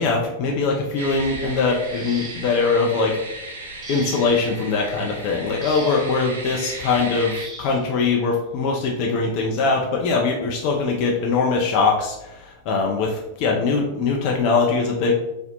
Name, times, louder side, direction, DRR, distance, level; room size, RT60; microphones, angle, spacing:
voice 1, 0.0-3.2 3.9-15.1, left 4 dB, 45° left, -1 dB, 0.3 m, -22 dB
sound 1, 1.0-7.5, right 2 dB, 70° right, 0.4 m, -36 dB
sound 2, 1.8-2.7 3.8-4.5 5.6-6.2 7.4-7.8 9.0-9.2 9.7-9.9, right 3 dB, 15° right, 0.7 m, -40 dB
2.5 x 2.0 x 2.7 m, 0.91 s
figure-of-eight pair, 90°, 0 cm